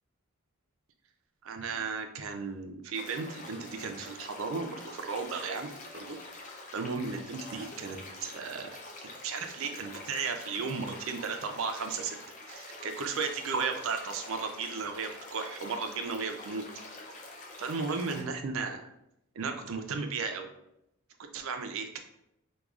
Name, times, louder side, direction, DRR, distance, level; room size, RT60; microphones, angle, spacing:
voice 1, 1.4-6.2 6.7-8.7 9.2-12.2 12.5-16.6 17.6-18.8 19.4-20.5 21.2-22.0, right 4 dB, 65° right, 5 dB, 0.4 m, -35 dB
sound 1, 2.9-18.2, left 2 dB, 35° left, 0.5 m, -46 dB
4.7 x 2.3 x 2.3 m, 0.80 s
head